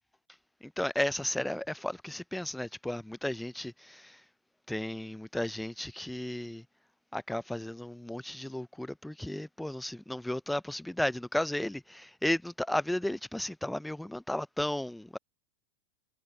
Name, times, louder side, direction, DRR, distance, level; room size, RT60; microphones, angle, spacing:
voice 1, 0.8-4.2 4.7-6.6 7.1-15.2, left 1 dB, 5° left, 0.3 m, -34 dB
hypercardioid pair, 110°, 0 cm